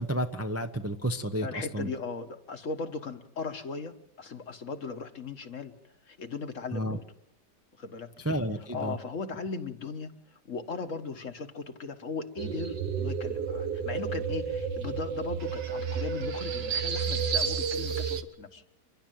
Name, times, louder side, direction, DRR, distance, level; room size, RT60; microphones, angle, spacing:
voice 1, 0.0-1.9 6.7-7.0 8.2-9.0, right 1 dB, 10° right, 6 dB, 0.7 m, -31 dB
voice 2, 1.4-7.0 7.8-8.1 8.7-18.6, left 4 dB, 50° left, 8 dB, 1.5 m, -38 dB
sound 1, 12.4-18.2, right 6 dB, 80° right, 1.9 m, -31 dB
29.5 x 11.5 x 9.1 m, 0.86 s
omnidirectional pair, 1.8 m